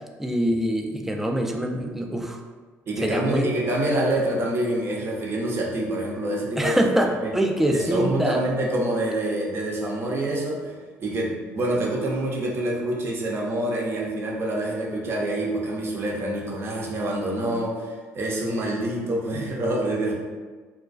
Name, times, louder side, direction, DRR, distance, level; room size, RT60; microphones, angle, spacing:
voice 1, 0.2-2.4 3.0-3.5 6.6-8.4, right 1 dB, 5° right, 2 dB, 0.3 m, -24 dB
voice 2, 2.9-6.8 7.2-7.3 7.7-10.7 11.0-20.1, right 1 dB, 45° right, -2 dB, 0.6 m, -26 dB
2.3 x 2.2 x 2.4 m, 1.4 s
supercardioid pair, 75°, 6 cm